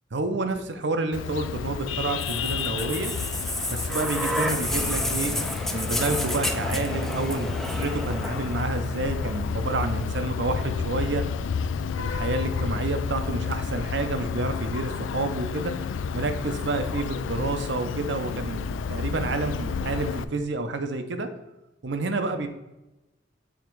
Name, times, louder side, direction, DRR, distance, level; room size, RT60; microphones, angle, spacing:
voice 1, 0.1-3.1 3.7-5.3 5.7-11.2 12.0-15.7 16.1-18.6 18.9-21.3 21.8-22.5, right 2 dB, 65° right, 8 dB, 0.6 m, -29 dB
Vehicle horn car horn honking, 1.1-20.2, left 5 dB, 90° left, 0.3 m, -31 dB
sound 1, 2.2-10.1 11.1-11.2, left 1 dB, ahead, 0.4 m, -31 dB
7.2 x 3.6 x 4.5 m, 1.0 s
head